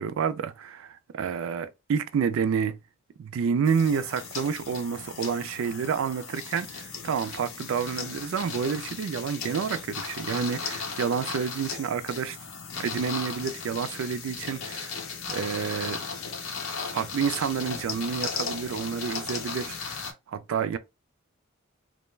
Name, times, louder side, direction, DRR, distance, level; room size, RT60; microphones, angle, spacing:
voice 1, 0.0-2.8 3.2-12.4 12.8-14.9 15.3-16.0 16.9-20.8, right 6 dB, 70° right, 0.3 m, -29 dB
sound 1, 3.7-20.1, left 5 dB, 85° left, 0.6 m, -36 dB
2.2 x 2.1 x 3.0 m
head